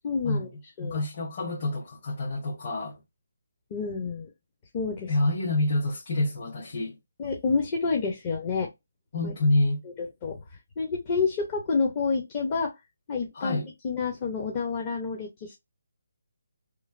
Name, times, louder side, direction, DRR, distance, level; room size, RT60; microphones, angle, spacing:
voice 1, 0.0-0.5 0.8-1.0 3.7-4.3 4.7-5.1 7.2-8.7 9.2-9.3 10.0-10.4 10.8-12.7 13.1-13.6 13.8-15.6, left 4 dB, 30° left, 0.6 m, -28 dB
voice 2, 0.8-3.0 5.1-6.9 9.1-9.8 13.3-13.7, left 2 dB, 50° left, 1.3 m, -27 dB
3.1 x 2.4 x 2.4 m
figure-of-eight pair, 155°, 0 cm